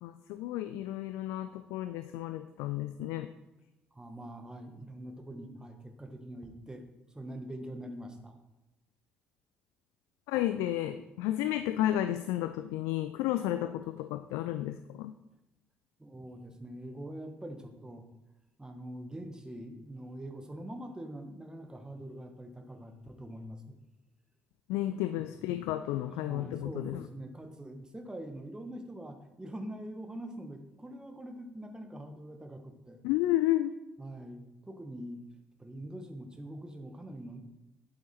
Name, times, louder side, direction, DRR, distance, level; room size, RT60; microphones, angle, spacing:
voice 1, 0.0-3.3 10.3-15.1 24.7-27.0 33.0-33.7, left 13 dB, 65° left, 11 dB, 0.3 m, -32 dB
voice 2, 3.9-6.9 7.1-8.4 16.0-18.0 18.6-23.8 25.3-25.4 26.1-33.0 34.0-35.2 35.6-37.4, right 1 dB, 15° right, 6 dB, 1.5 m, -44 dB
8.5 x 7.9 x 4.3 m, 0.98 s
figure-of-eight pair, 45°, 5 cm